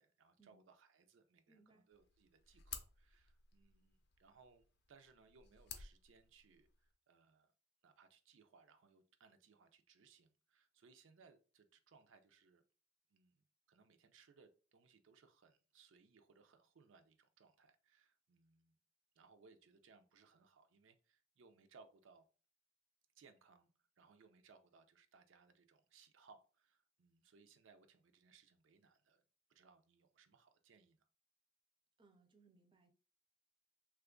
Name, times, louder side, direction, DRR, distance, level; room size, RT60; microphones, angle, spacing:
voice 1, 0.0-7.5 7.8-12.6 13.1-18.8 19.2-22.3 23.1-29.2 29.5-31.1, right 5 dB, 85° right, 0.5 m, -67 dB
voice 2, 1.5-1.8 32.0-32.9, right 3 dB, 25° right, 0.4 m, -69 dB
sound 1, 1.9-6.9, left 7 dB, 55° left, 0.5 m, -56 dB
3.0 x 2.3 x 3.6 m
head